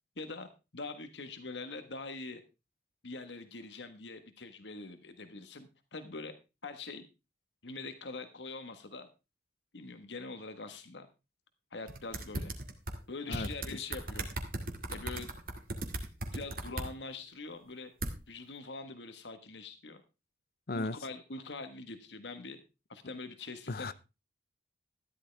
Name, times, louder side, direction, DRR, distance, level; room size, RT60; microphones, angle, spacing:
voice 1, 0.2-2.4 3.0-6.4 6.6-7.1 7.6-9.1 9.7-11.1 11.7-12.5 13.1-14.3 14.9-15.4 16.3-17.9 18.3-20.0 20.7-22.6 22.9-23.9, left 3 dB, 85° left, 1.5 m, -43 dB
sound 1, 11.9-13.0 13.3-16.9 18.0-18.1, right 2 dB, 55° right, 2.1 m, -37 dB
voice 2, 13.3-13.5 20.7-21.0 23.7-23.9, left 2 dB, 55° left, 0.7 m, -35 dB
14.0 x 11.5 x 3.4 m
head